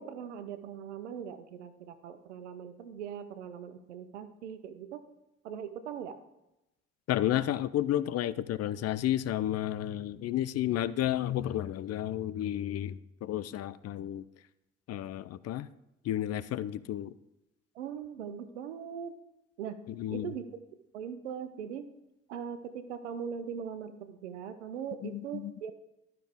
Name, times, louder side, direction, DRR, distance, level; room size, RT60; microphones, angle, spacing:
voice 1, 0.0-5.0 5.4-6.2 17.7-19.1 19.6-19.8 20.1-20.5 20.9-21.9 22.3-25.7, right 8 dB, 90° right, 10 dB, 0.6 m, -40 dB
voice 2, 7.1-14.2 14.9-15.7 16.0-17.1 20.0-20.3 25.0-25.5, left 12 dB, 45° left, 17 dB, 0.5 m, -32 dB
12.0 x 5.7 x 3.5 m, 0.92 s
hypercardioid pair, 45°, 34 cm